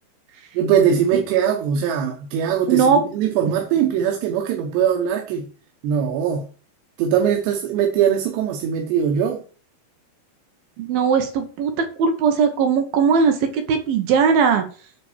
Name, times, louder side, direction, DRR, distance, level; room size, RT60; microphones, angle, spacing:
voice 1, 0.5-5.5 5.8-6.5 7.0-9.4, right 8 dB, 90° right, 3.3 m, -21 dB
voice 2, 2.7-3.0 10.8-14.6, right 6 dB, 70° right, 2.8 m, -19 dB
10.0 x 4.3 x 7.3 m
omnidirectional pair, 4.8 m